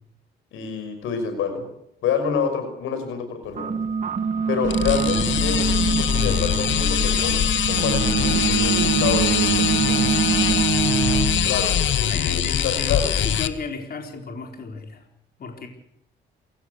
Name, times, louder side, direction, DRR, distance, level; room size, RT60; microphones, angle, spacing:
voice 1, 0.5-1.7 2.0-3.7 4.5-7.4 7.7-10.0 11.4-13.1, left 6 dB, 90° left, 8 dB, 5.9 m, -28 dB
sound 1, 3.4-10.7, right 5 dB, 40° right, 1.5 m, -27 dB
sound 2, 4.6-13.5, left 9 dB, 70° left, 1.6 m, -22 dB
Bowed string instrument, 7.7-12.0, right 8 dB, 85° right, 1.6 m, -24 dB
voice 2, 10.8-11.4 12.1-15.0 15.4-15.7, left 4 dB, 50° left, 3 dB, 4.5 m, -34 dB
29.5 x 16.0 x 8.2 m, 0.76 s
cardioid pair, 90°, 20 cm